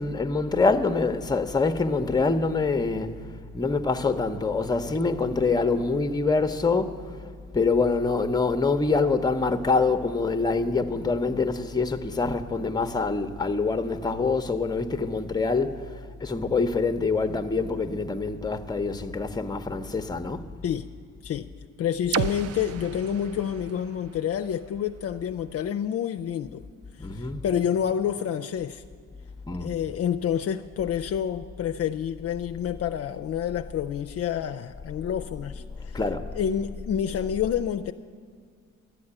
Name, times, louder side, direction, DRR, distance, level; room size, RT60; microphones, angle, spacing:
voice 1, 0.0-3.1 3.5-7.3 7.5-20.5 27.0-27.4 29.5-29.8 35.9-36.3, left 4 dB, 15° left, 0.7 m, -25 dB
voice 2, 21.8-26.6 26.9-28.8 29.6-36.0 36.4-37.9, left 9 dB, 50° left, 0.5 m, -28 dB
sound 1, 22.1-26.0, right 9 dB, 55° right, 0.4 m, -35 dB
12.0 x 7.8 x 9.7 m
cardioid pair, 90°, 30 cm